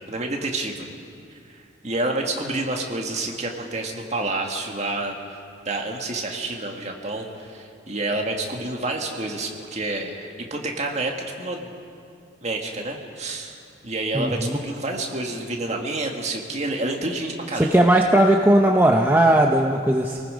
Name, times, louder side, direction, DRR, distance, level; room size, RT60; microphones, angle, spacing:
voice 1, 0.1-0.9 1.5-5.4 5.7-11.7 12.4-13.6 13.8-17.8, right 2 dB, 35° right, 1 dB, 1.9 m, -29 dB
voice 2, 14.1-14.6 17.6-20.2, right 1 dB, 10° right, 1 dB, 0.7 m, -18 dB
27.5 x 18.5 x 5.2 m, 2.4 s
head